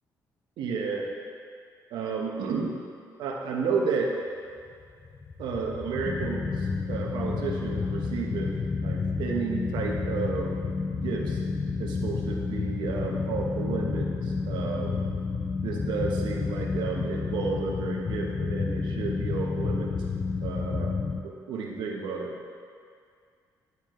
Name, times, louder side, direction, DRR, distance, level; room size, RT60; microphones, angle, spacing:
voice 1, 0.6-1.1 1.9-2.7 3.2-4.1 5.4-8.5 8.8-10.5 10.8-11.4 11.8-15.0 15.6-19.9 20.4-21.0 21.2-22.3, right 4 dB, 85° right, 0 dB, 0.9 m, -32 dB
sound 1, 4.8-21.2, left 4 dB, 30° left, 0.5 m, -30 dB
9.4 x 4.5 x 3.0 m, 2.2 s
cardioid pair, 100°, 8 cm